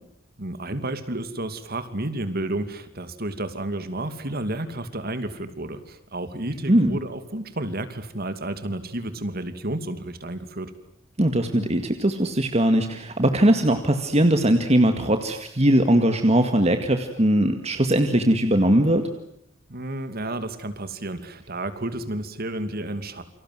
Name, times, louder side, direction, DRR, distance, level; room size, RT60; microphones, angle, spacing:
voice 1, 0.4-10.7 19.7-23.2, right 1 dB, 50° right, 11 dB, 2.6 m, -31 dB
voice 2, 6.7-7.0 11.2-19.1, right 1 dB, 30° right, 7 dB, 2.0 m, -20 dB
29.0 x 25.5 x 7.8 m, 0.68 s
head